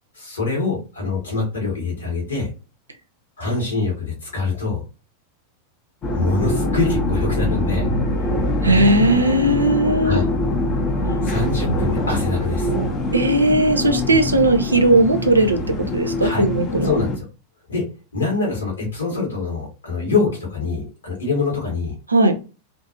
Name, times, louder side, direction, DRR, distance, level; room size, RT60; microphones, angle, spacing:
voice 1, 0.1-2.5 3.4-4.8 6.1-7.9 10.0-10.3 11.2-12.7 16.2-16.4 16.8-17.2 17.7-17.8 18.1-21.9, left 4 dB, 70° left, -2 dB, 1.3 m, -24 dB
sound 1, 6.0-17.2, left 1 dB, 30° left, 0.5 m, -23 dB
voice 2, 8.6-10.2 13.1-16.9 22.1-22.4, right 1 dB, 80° right, 7 dB, 0.3 m, -17 dB
2.5 x 2.4 x 2.5 m, 0.33 s
figure-of-eight pair, 90°, 0 cm